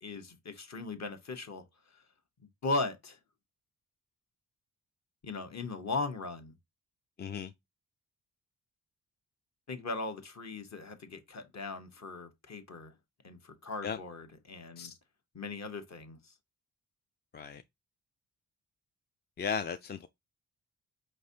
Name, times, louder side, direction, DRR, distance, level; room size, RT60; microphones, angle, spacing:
voice 1, 0.0-1.6 2.6-3.2 5.2-6.5 9.7-12.9 13.2-14.9 15.3-16.3, left 3 dB, 40° left, 1.1 m, -38 dB
voice 2, 7.2-7.5 13.8-14.0 14.8-14.9 17.3-17.6 19.4-20.1, left 6 dB, 25° left, 0.4 m, -36 dB
5.2 x 3.1 x 2.7 m
supercardioid pair, 55°, 40 cm